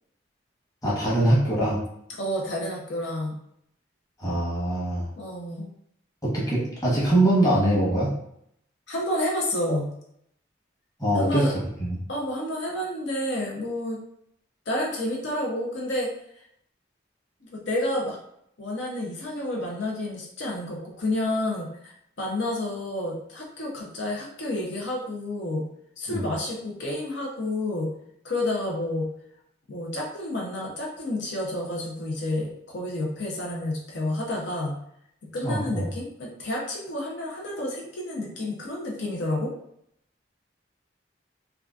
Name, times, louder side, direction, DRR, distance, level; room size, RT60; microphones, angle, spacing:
voice 1, 0.8-1.8 4.2-5.1 6.2-8.1 11.0-11.5 11.8-12.0 26.1-26.2 35.4-35.9, right 1 dB, 20° left, -7 dB, 1.0 m, -23 dB
voice 2, 2.2-3.3 5.1-5.7 8.9-9.9 11.1-11.5 12.1-14.0 14.7-16.1 17.4-18.2 18.6-25.6 26.0-27.9 28.2-29.1 29.7-34.8 35.3-39.5, left 1 dB, 75° left, -3 dB, 0.7 m, -30 dB
3.7 x 2.3 x 2.3 m, 0.73 s
head